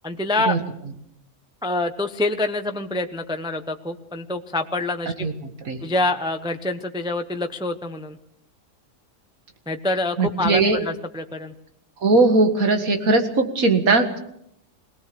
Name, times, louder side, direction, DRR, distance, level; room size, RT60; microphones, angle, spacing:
voice 1, 0.0-0.6 1.6-5.3 5.8-8.2 9.7-11.5, left 2 dB, 5° right, 7 dB, 0.7 m, -26 dB
voice 2, 5.2-5.8 10.2-10.8 12.0-14.2, right 3 dB, 70° right, 6 dB, 2.3 m, -19 dB
21.0 x 18.5 x 6.9 m, 0.75 s
omnidirectional pair, 1.5 m